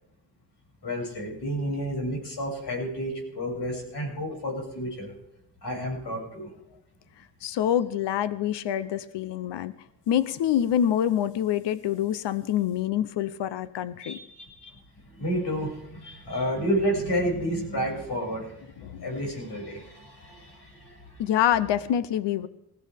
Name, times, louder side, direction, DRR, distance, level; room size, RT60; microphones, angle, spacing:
voice 1, 0.8-5.1 5.6-6.5 14.0-14.7 15.1-21.1, equal, 70° left, -1 dB, 6.6 m, -31 dB
voice 2, 7.4-9.7 10.1-14.2 18.8-19.0 21.2-22.5, left 10 dB, 90° left, 15 dB, 0.7 m, -26 dB
20.0 x 14.5 x 3.5 m, 0.84 s
cardioid pair, 55°, 41 cm